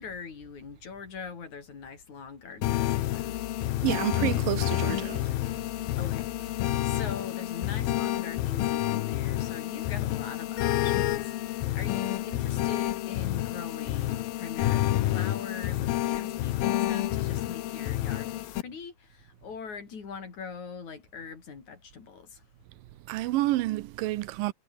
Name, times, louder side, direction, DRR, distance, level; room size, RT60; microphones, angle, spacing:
voice 1, 0.0-3.4 6.0-22.5, left 5 dB, 55° left, 5.1 m, -42 dB
sound 1, 2.6-18.6, left 14 dB, 90° left, 3.0 m, -29 dB
voice 2, 3.8-5.3 23.1-24.5, right 16 dB, 80° right, 2.4 m, -29 dB
omnidirectional pair, 4.1 m